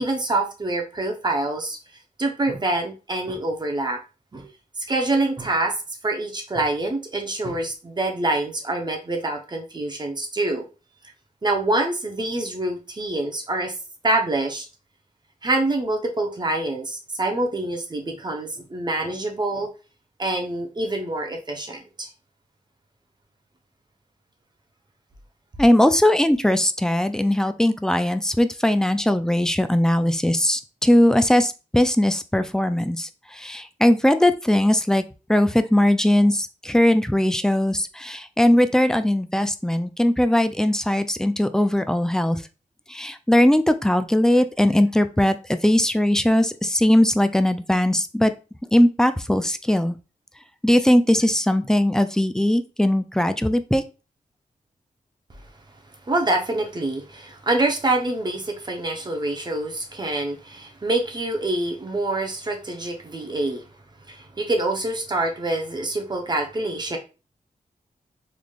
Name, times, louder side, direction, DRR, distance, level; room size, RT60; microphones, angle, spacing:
voice 1, 0.0-1.8 2.2-4.0 4.3-4.5 4.8-5.7 6.0-10.7 11.4-13.7 14.0-14.7 15.4-19.7 20.2-22.1 56.1-63.6 64.1-67.0, right 2 dB, 30° right, 3 dB, 0.8 m, -26 dB
voice 2, 25.6-35.0 35.3-42.4 42.9-48.3 48.7-50.0 50.6-53.8, left 1 dB, 5° left, 10 dB, 0.3 m, -19 dB
3.9 x 3.2 x 2.3 m, 0.31 s
wide cardioid pair, 110°, 14 cm